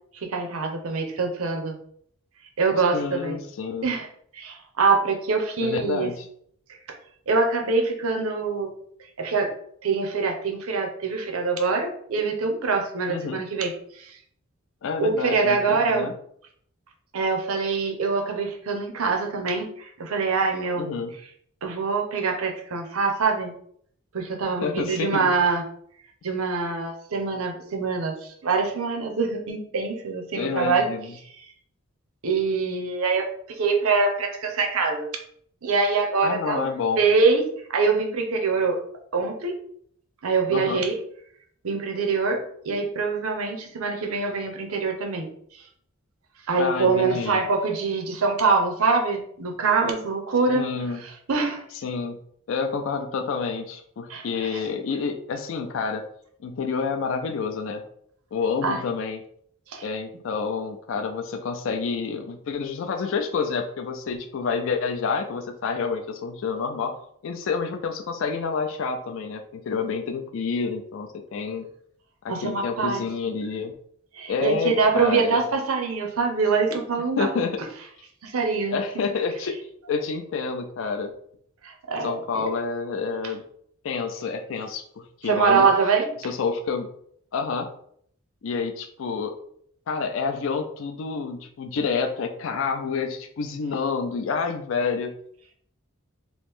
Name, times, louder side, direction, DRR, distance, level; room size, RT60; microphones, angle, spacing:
voice 1, 0.1-1.8 2.6-3.4 3.8-4.1 4.3-6.1 7.3-8.7 9.2-9.5 9.8-14.2 15.0-16.1 17.1-20.9 21.6-23.5 24.1-25.6 26.2-30.9 32.2-33.3 33.6-35.1 35.6-36.7 37.0-37.4 37.7-38.8 39.1-39.6 40.2-41.0 41.6-45.3 45.5-45.6 46.5-50.7 51.3-51.6 54.1-54.6 58.6-58.8 59.7-59.9 72.3-73.0 74.1-77.3 78.2-79.1 81.6-82.5 85.2-86.1, right 4 dB, 90° right, 3 dB, 0.7 m, -24 dB
voice 2, 2.9-3.9 5.6-6.3 13.1-13.4 14.8-16.1 20.8-21.1 24.4-25.3 30.3-31.1 36.2-37.0 40.5-40.8 46.6-47.4 50.5-51.0 51.8-52.2 52.5-56.1 56.4-57.8 58.3-59.2 59.8-71.7 72.2-73.7 74.3-75.4 77.2-77.6 78.7-79.6 79.9-81.1 82.0-83.4 83.8-85.7 86.2-86.9 87.3-87.7 88.4-89.3 89.9-95.1, left 5 dB, 70° left, 5 dB, 0.4 m, -28 dB
3.0 x 2.5 x 3.5 m, 0.64 s
head